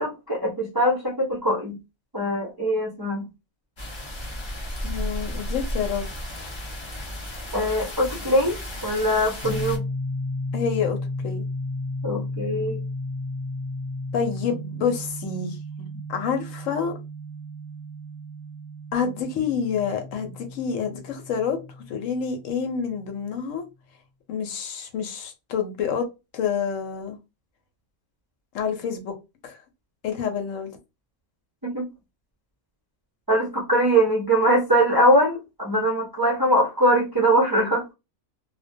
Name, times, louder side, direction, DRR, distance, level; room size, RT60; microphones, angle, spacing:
voice 1, 0.0-1.8 2.1-3.3 7.5-8.6 8.8-9.8 12.0-12.8 31.6-31.9 33.3-37.8, right 1 dB, 35° right, 0.4 m, -22 dB
sound 1, 3.8-9.8, equal, 50° left, 0.3 m, -33 dB
voice 2, 4.8-6.0 10.5-11.0 11.2-11.4 14.1-16.9 18.9-21.6 21.9-23.6 24.3-26.1 26.3-27.2 28.5-29.1 29.4-29.6 30.0-30.7, left 6 dB, 70° left, 0.9 m, -28 dB
sound 2, 9.4-23.0, left 1 dB, 30° left, 0.8 m, -34 dB
2.2 x 2.2 x 2.6 m
omnidirectional pair, 1.4 m